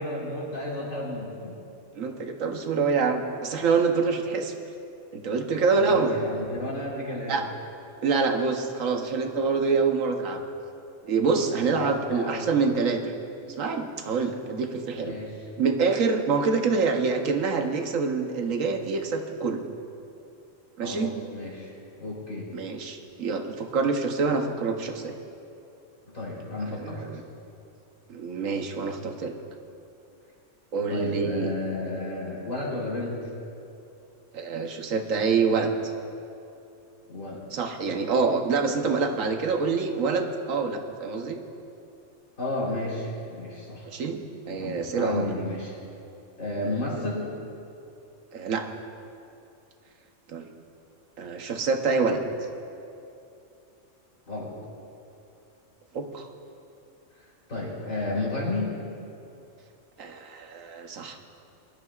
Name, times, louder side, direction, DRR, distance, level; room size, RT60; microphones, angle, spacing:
voice 1, 0.0-1.6 5.7-7.4 11.7-12.5 15.0-15.5 20.8-21.7 22.0-22.5 26.1-27.2 30.9-33.3 37.1-37.5 42.4-43.9 44.5-45.8 46.4-47.3 54.3-54.6 57.2-58.7, left 2 dB, 80° left, -5 dB, 4.1 m, -32 dB
voice 2, 1.9-4.5 5.1-6.1 7.3-7.4 8.0-10.4 11.0-13.0 13.5-15.1 15.6-19.6 20.8-21.1 22.5-25.1 26.7-27.2 28.1-29.3 30.7-31.5 34.3-35.7 37.5-41.4 43.9-44.2 44.5-45.3 46.6-46.7 48.3-48.7 50.3-50.5 51.2-52.2 55.9-56.3 60.0-61.2, right 4 dB, 90° right, 4 dB, 1.3 m, -26 dB
22.5 x 12.5 x 2.4 m, 2.7 s
omnidirectional pair, 1.3 m